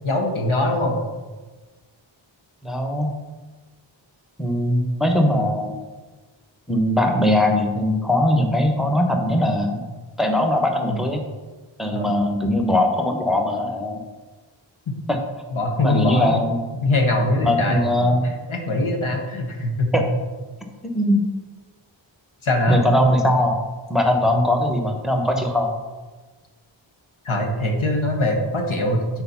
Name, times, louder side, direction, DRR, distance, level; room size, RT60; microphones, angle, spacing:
voice 1, 0.0-1.0 11.9-12.2 15.5-16.4 16.8-18.2 18.5-19.9 22.4-22.8 27.2-29.0, left 1 dB, 85° left, 2 dB, 1.3 m, -22 dB
voice 2, 2.6-3.1 4.4-5.7 6.7-9.8 10.2-11.2 11.8-14.0 15.8-16.6 17.4-18.3 19.9-20.0 20.9-21.2 22.7-23.6 23.9-25.7, left 1 dB, ahead, 2 dB, 1.0 m, -20 dB
6.8 x 4.5 x 5.7 m, 1.3 s
wide cardioid pair, 65°, 47 cm